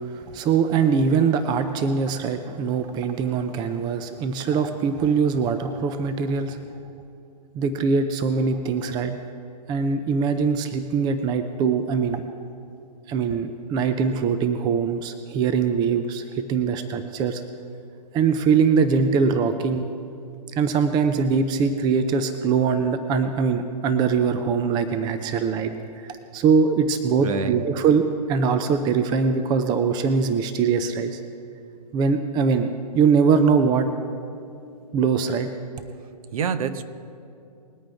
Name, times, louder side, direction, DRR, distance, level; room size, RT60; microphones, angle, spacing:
voice 1, 0.1-6.6 7.5-9.1 9.7-12.2 13.1-17.4 18.1-19.9 20.5-31.2 31.9-33.9 34.9-35.5, right 5 dB, 20° right, 9 dB, 0.6 m, -22 dB
voice 2, 27.2-27.7 36.3-36.8, right 6 dB, 55° right, 11 dB, 1.0 m, -26 dB
21.0 x 8.8 x 3.6 m, 2.5 s
hypercardioid pair, 135°, 21 cm